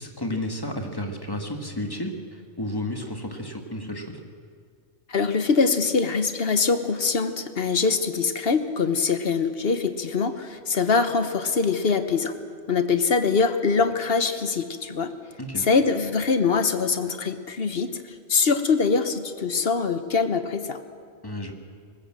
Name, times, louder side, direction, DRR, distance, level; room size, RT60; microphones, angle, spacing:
voice 1, 0.0-4.2 15.4-15.7 21.2-21.5, left 1 dB, 20° left, 3 dB, 1.9 m, -32 dB
voice 2, 5.1-12.3 12.7-15.1 15.6-18.0 18.3-20.8, left 4 dB, 55° left, 9 dB, 1.2 m, -23 dB
20.0 x 19.0 x 7.6 m, 2.2 s
omnidirectional pair, 1.3 m